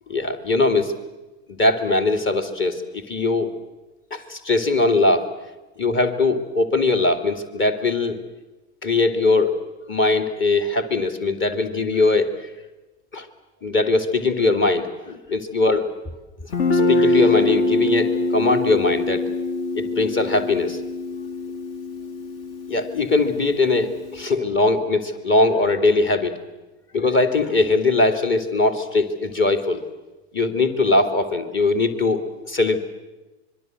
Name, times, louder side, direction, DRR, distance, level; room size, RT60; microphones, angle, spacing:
voice 1, 0.1-0.9 1.5-3.5 4.1-5.3 5.8-8.2 8.8-9.6 9.9-12.3 13.1-13.3 13.6-15.9 16.7-19.2 19.7-20.8 22.7-26.3 26.9-29.8 30.3-32.8, left 3 dB, 35° left, 7 dB, 2.8 m, -21 dB
Guitar, 16.5-24.2, left 2 dB, 60° left, 2.2 m, -24 dB
25.5 x 23.0 x 7.8 m, 1.1 s
figure-of-eight pair, 70°, 34 cm